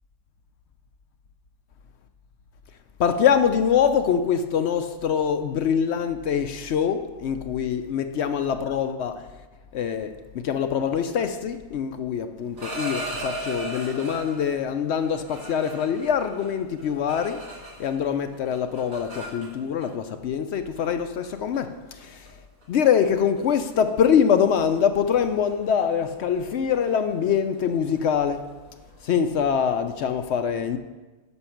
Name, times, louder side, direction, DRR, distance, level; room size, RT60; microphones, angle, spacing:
voice 1, 3.0-9.2 9.7-17.4 17.8-21.7 22.1-22.2 22.7-28.4 29.0-30.8, left 7 dB, 65° left, 0.7 m, -24 dB
sound 1, 12.4-14.5 15.0-18.1 18.3-19.9 20.8-20.9 21.2-21.6 22.0-22.3 22.6-22.9 23.1-23.4 23.7-29.1, right 1 dB, 65° right, 2.4 m, -37 dB
9.8 x 6.2 x 5.8 m
omnidirectional pair, 1.5 m